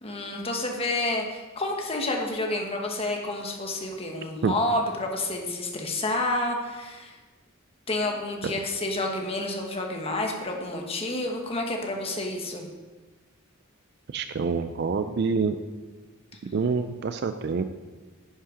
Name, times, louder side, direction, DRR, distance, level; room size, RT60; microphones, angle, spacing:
voice 1, 0.0-7.2 7.9-12.7, left 2 dB, 30° left, 2 dB, 1.2 m, -29 dB
voice 2, 14.1-15.6 16.4-17.7, right 5 dB, 50° right, 10 dB, 0.3 m, -27 dB
10.5 x 5.6 x 4.9 m, 1.3 s
head